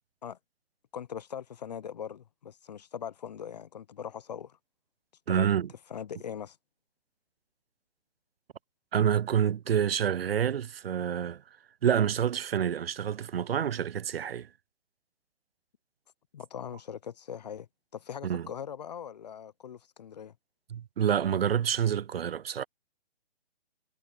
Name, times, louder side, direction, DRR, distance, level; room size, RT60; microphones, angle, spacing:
voice 1, 0.9-4.6 5.3-5.5 5.9-6.6 16.3-20.3, left 8 dB, 40° left, 0.6 m, -41 dB
voice 2, 5.3-5.7 8.9-11.4 11.8-14.5 18.2-18.5 20.7-22.6, right 9 dB, 60° right, 0.7 m, -27 dB
hypercardioid pair, 150°, 34 cm